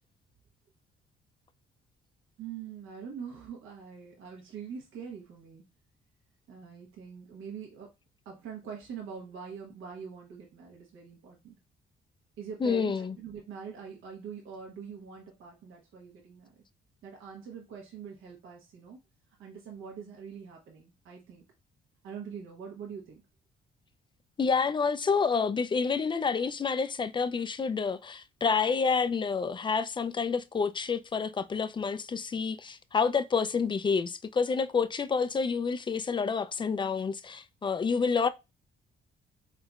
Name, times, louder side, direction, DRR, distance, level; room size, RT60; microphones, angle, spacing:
voice 1, 2.4-5.6 6.5-7.9 8.2-11.6 12.4-16.5 17.0-19.0 19.4-21.4 22.0-23.2, right 6 dB, 85° right, 1.2 m, -44 dB
voice 2, 12.6-13.2 24.4-38.3, left 5 dB, 25° left, 0.3 m, -28 dB
4.0 x 3.6 x 2.3 m
cardioid pair, 90°, 20 cm